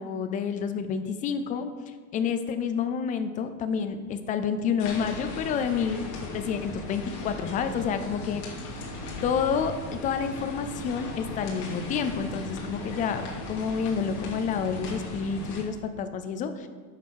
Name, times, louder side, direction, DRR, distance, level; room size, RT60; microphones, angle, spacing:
voice 1, 0.0-8.6 9.2-16.7, left 6 dB, 20° left, 9 dB, 0.4 m, -29 dB
sound 1, 4.8-15.6, left 2 dB, 40° left, 2.7 m, -37 dB
10.0 x 7.2 x 6.2 m, 1.5 s
supercardioid pair, 155°, 47 cm